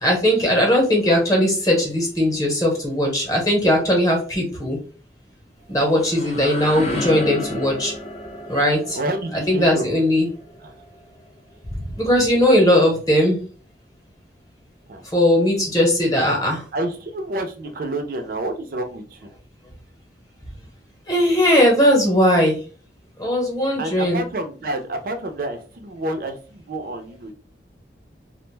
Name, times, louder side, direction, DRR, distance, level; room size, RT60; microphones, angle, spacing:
voice 1, 0.0-4.8 5.7-7.9 8.5-9.0 9.5-10.3 11.7-13.4 15.1-16.7 21.1-22.6 23.2-24.2, equal, 20° left, -1 dB, 0.9 m, -18 dB
sound 1, 5.6-11.4, left 1 dB, 35° left, 0.5 m, -32 dB
voice 2, 9.0-9.9 10.6-10.7 14.9-15.0 16.7-19.3 23.8-27.3, right 1 dB, 55° right, 5 dB, 0.5 m, -29 dB
2.4 x 2.1 x 3.2 m, 0.39 s
head